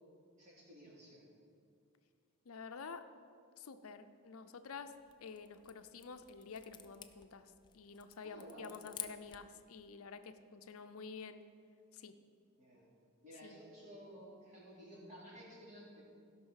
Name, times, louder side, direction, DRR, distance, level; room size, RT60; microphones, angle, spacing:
voice 1, 0.4-1.3 8.2-8.8 12.6-12.9 13.2-16.0, equal, 35° right, -6 dB, 3.4 m, -54 dB
voice 2, 2.5-3.1 3.6-11.4 11.9-12.2 13.4-13.6, left 5 dB, 70° left, 9 dB, 0.5 m, -50 dB
sound 1, 4.9-9.6, left 9 dB, 20° left, 0.4 m, -52 dB
16.0 x 5.6 x 6.4 m, 2.4 s
head